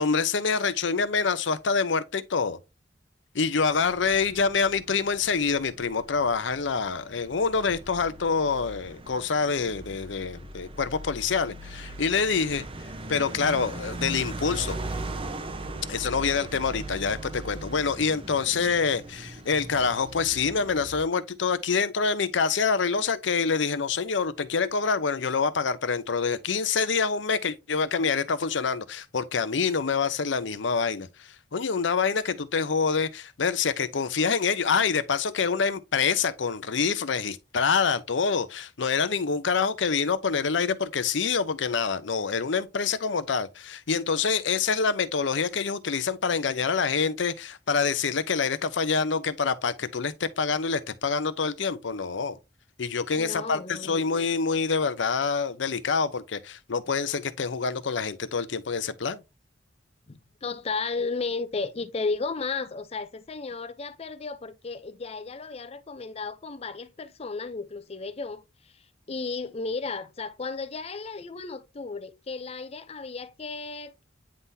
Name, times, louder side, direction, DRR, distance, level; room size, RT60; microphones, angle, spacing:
voice 1, 0.0-2.6 3.3-12.6 13.1-14.8 15.9-52.4 52.8-59.2, left 5 dB, 80° left, 0.7 m, -26 dB
sound 1, 3.6-21.0, right 2 dB, 30° right, 0.8 m, -39 dB
voice 2, 53.1-54.0 60.1-74.0, left 4 dB, 35° left, 0.5 m, -34 dB
9.6 x 3.8 x 2.7 m
head